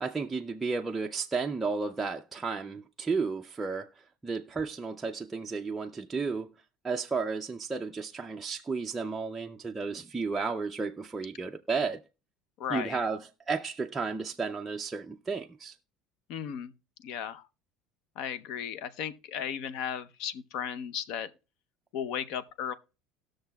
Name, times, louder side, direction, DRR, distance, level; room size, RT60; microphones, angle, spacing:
voice 1, 0.0-3.9 4.2-6.5 6.8-12.0 12.7-15.8, right 4 dB, 10° right, 0.4 m, -33 dB
voice 2, 12.6-13.0 16.3-16.7 17.0-17.5 18.2-21.3 21.9-22.7, left 8 dB, 60° left, 0.6 m, -35 dB
19.0 x 6.4 x 2.3 m
cardioid pair, 150°, 0 cm